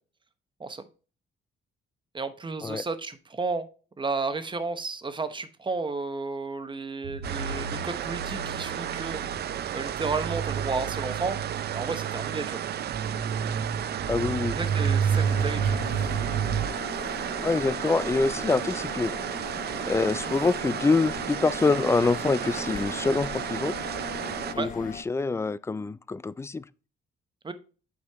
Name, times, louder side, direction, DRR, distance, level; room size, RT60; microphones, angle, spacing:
voice 1, 2.1-3.7 4.0-9.2 9.7-11.4 11.7-12.6 14.5-15.8 24.6-24.7 27.4-27.5, right 3 dB, 25° right, 0.9 m, -32 dB
sound 1, 7.0-16.7, right 7 dB, 75° right, 0.9 m, -31 dB
sound 2, 7.2-24.5, right 10 dB, 55° right, 0.5 m, -33 dB
voice 2, 14.1-14.6 17.4-19.1 19.8-23.8 24.5-26.6, left 3 dB, 15° left, 0.3 m, -25 dB
sound 3, 15.1-25.0, left 6 dB, 40° left, 0.9 m, -39 dB
8.2 x 5.2 x 3.4 m
cardioid pair, 90°, 20 cm